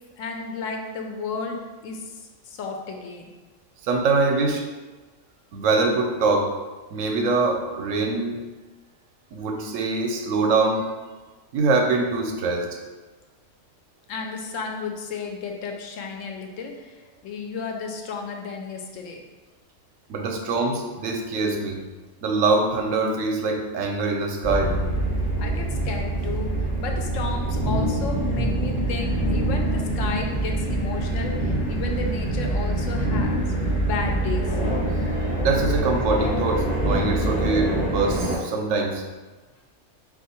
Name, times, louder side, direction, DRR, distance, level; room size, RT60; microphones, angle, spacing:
voice 1, 0.2-3.2 14.1-19.2 25.4-33.4 33.8-34.6, left 4 dB, 80° left, 2 dB, 1.0 m, -33 dB
voice 2, 3.8-4.6 5.5-6.5 6.9-8.4 9.3-10.9 11.5-12.8 20.1-21.8 22.2-24.8 35.1-39.0, right 3 dB, 85° right, 3 dB, 1.0 m, -23 dB
sound 1, 24.4-38.4, right 1 dB, 30° left, 0.8 m, -25 dB
3.6 x 2.5 x 4.2 m, 1.3 s
omnidirectional pair, 1.3 m